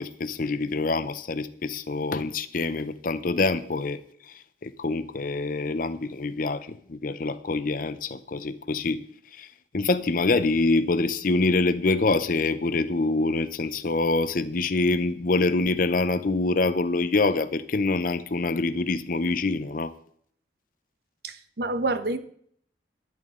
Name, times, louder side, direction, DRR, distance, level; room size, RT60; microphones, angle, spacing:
voice 1, 0.0-9.0 9.3-9.5 9.7-19.9, left 3 dB, 50° left, 13 dB, 0.7 m, -25 dB
voice 2, 21.2-22.2, right 2 dB, 60° right, 10 dB, 1.0 m, -28 dB
13.0 x 10.5 x 3.8 m, 0.62 s
head